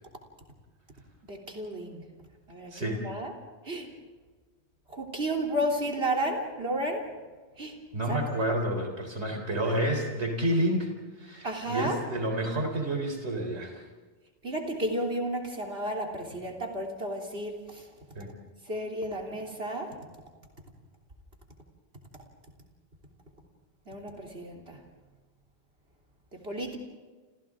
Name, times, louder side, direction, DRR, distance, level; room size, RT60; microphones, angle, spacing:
voice 1, 1.2-2.0 2.5-3.3 3.7-3.9 4.9-7.0 7.6-7.8 8.1-8.3 11.4-12.0 14.4-17.8 18.7-19.9 23.9-24.8 26.4-26.8, right 1 dB, 65° right, 3 dB, 3.7 m, -32 dB
voice 2, 2.7-3.0 7.9-13.8 18.2-18.3, right 1 dB, 85° right, 2 dB, 4.1 m, -29 dB
29.5 x 29.5 x 3.8 m, 1.4 s
omnidirectional pair, 1.1 m